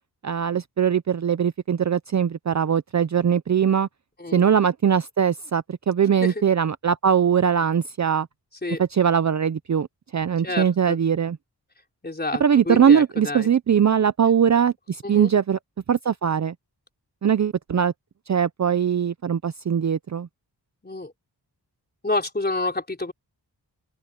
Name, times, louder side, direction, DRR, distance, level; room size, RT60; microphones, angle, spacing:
voice 1, 0.2-3.9 4.3-8.3 8.8-9.9 10.1-11.4 12.4-15.6 15.9-16.5 17.2-17.9 18.3-20.3, right 8 dB, 45° right, 0.5 m, -21 dB
voice 2, 10.4-11.0 12.0-13.5 15.0-15.3 20.8-21.1 22.0-23.1, left 2 dB, 25° left, 3.9 m, -28 dB
open air
wide cardioid pair, 125°, 41 cm